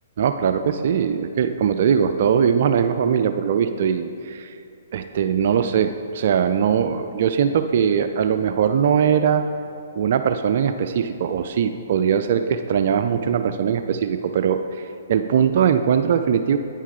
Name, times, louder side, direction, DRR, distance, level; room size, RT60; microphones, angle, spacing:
voice 1, 0.2-4.6 4.9-9.4 9.9-16.6, right 7 dB, 55° right, 8 dB, 0.4 m, -21 dB
9.1 x 5.6 x 4.8 m, 2.6 s
hypercardioid pair, 130°, 0 cm